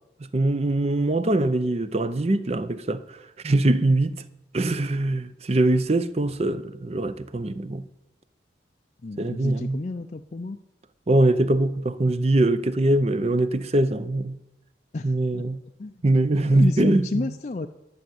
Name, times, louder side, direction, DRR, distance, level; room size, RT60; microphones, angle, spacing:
voice 1, 0.3-3.0 3.4-4.2 4.5-7.8 9.2-9.8 11.1-14.4 15.0-15.6 16.0-17.2, right 2 dB, 35° right, 0.6 m, -22 dB
voice 2, 9.0-10.6 14.9-15.5 15.8-15.9 16.5-17.7, left 2 dB, 40° left, 0.4 m, -31 dB
11.5 x 6.3 x 9.4 m
head